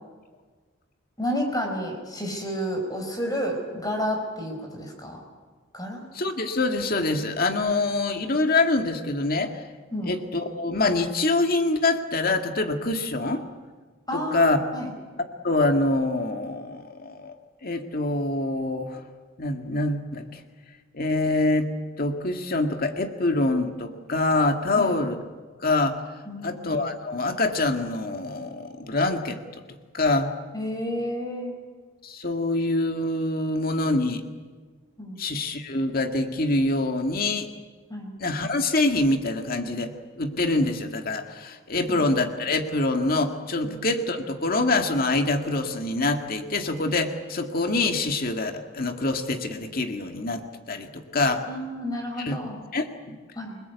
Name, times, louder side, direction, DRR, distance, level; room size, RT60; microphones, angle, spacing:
voice 1, 1.2-5.2 5.7-6.0 9.9-10.1 14.1-14.9 24.7-24.9 26.3-26.7 30.5-31.5 35.0-35.2 37.9-38.1 41.9-42.0 43.6-43.7 51.5-52.6 53.3-53.6, equal, 20° left, 2 dB, 4.9 m, -30 dB
voice 2, 6.1-9.6 10.0-13.4 14.1-14.6 15.2-17.4 17.6-19.0 19.4-20.4 20.9-21.7 22.0-25.2 25.6-26.0 26.4-29.4 29.9-30.3 32.0-34.2 35.2-37.5 38.2-51.5 52.2-52.4 52.7-53.2, left 2 dB, 45° left, 5 dB, 2.1 m, -25 dB
29.0 x 20.0 x 8.2 m, 1.5 s
head